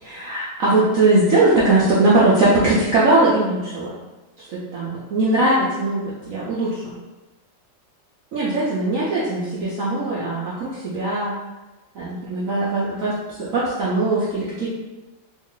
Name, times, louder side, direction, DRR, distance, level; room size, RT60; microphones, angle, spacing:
voice 1, 0.0-3.9 4.5-6.9 8.3-11.4 12.0-14.7, right 2 dB, 65° right, -8 dB, 0.8 m, -20 dB
3.1 x 2.4 x 3.7 m, 1.1 s
omnidirectional pair, 2.0 m